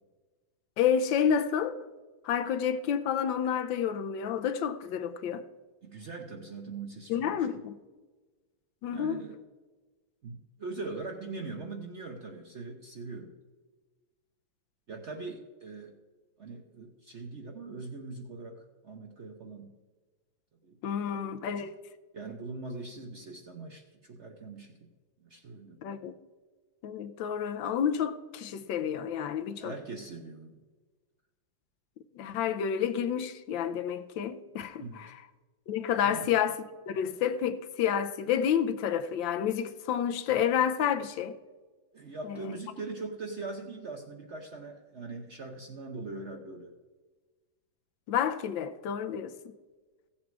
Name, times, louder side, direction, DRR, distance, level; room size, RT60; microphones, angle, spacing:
voice 1, 0.8-1.9 2.2-5.4 7.1-7.8 8.8-9.2 20.8-21.8 25.8-26.1 26.8-29.7 32.2-35.1 35.7-36.6 36.9-41.4 42.3-42.4 48.1-49.4, left 8 dB, 80° left, 1.4 m, -29 dB
voice 2, 5.8-7.5 8.9-9.4 10.2-13.3 14.9-16.0 16.4-19.7 20.6-21.6 22.1-24.9 25.2-25.8 29.5-30.6 34.8-35.1 36.0-36.3 41.9-46.7, right 3 dB, 50° right, 0.8 m, -41 dB
15.5 x 7.3 x 4.7 m
omnidirectional pair, 2.1 m